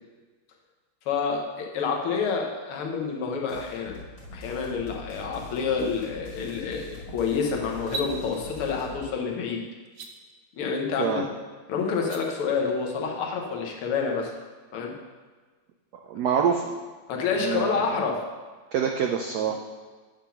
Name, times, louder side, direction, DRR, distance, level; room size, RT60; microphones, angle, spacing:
voice 1, 1.1-4.0 4.3-9.6 10.6-11.2 11.7-14.3 14.7-14.9 17.1-18.2, left 5 dB, 90° left, 1 dB, 1.9 m, -28 dB
sound 1, 3.5-9.0, left 1 dB, 70° left, 2.7 m, -43 dB
sound 2, 7.8-8.1 9.8-10.1 11.9-12.2, right 3 dB, 65° right, 1.1 m, -34 dB
voice 2, 16.1-16.7 17.4-17.8 18.7-19.5, right 7 dB, 85° right, 3 dB, 0.8 m, -25 dB
8.8 x 3.7 x 5.7 m, 1.4 s
omnidirectional pair, 2.3 m